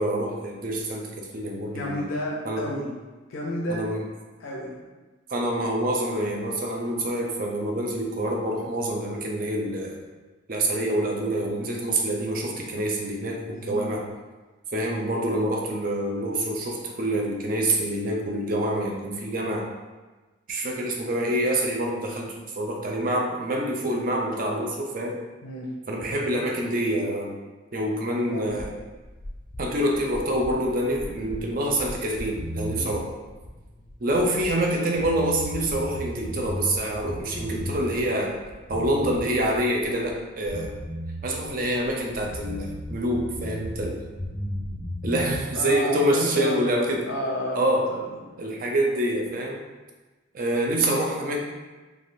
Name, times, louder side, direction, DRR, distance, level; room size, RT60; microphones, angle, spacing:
voice 1, 0.0-2.0 2.4-2.6 3.7-4.0 5.3-10.0 10.5-14.0 14.7-19.7 20.5-25.2 25.9-27.3 27.7-28.7 29.6-33.1 34.0-38.3 38.7-40.7 41.2-44.1 45.0-47.1 47.5-47.9 48.4-49.6 50.3-51.4, right 1 dB, 45° right, 0 dB, 0.4 m, -26 dB
voice 2, 1.4-2.9 3.3-3.8 4.4-4.8 13.5-13.9 25.4-25.7 28.3-28.5 32.7-32.9 45.5-46.7 47.0-48.1, left 1 dB, 85° left, -3 dB, 0.6 m, -31 dB
sound 1, 28.6-34.7 34.9-38.0 38.3-40.2 40.4-43.9 44.2-45.4, equal, 25° left, 0.4 m, -35 dB
3.2 x 2.4 x 2.6 m, 1.2 s
head